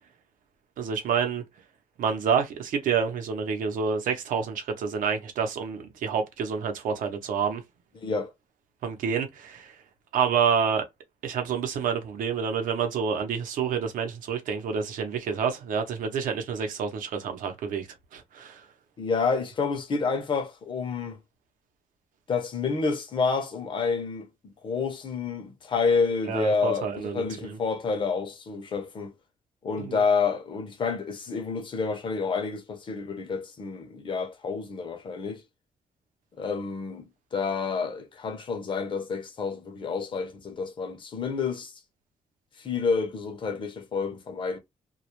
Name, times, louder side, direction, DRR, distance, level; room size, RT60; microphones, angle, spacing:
voice 1, 0.8-1.4 2.0-7.6 8.8-9.8 10.1-10.9 11.2-17.9 18.1-18.6 26.3-27.6 29.8-30.0, right 6 dB, 85° right, 0.7 m, -28 dB
voice 2, 8.0-8.3 19.0-21.2 22.3-24.3 24.6-29.1 29.6-35.4 36.4-37.0 37.3-41.7 42.6-44.6, left 5 dB, 35° left, 0.6 m, -29 dB
2.3 x 2.0 x 2.9 m
wide cardioid pair, 170°, 14 cm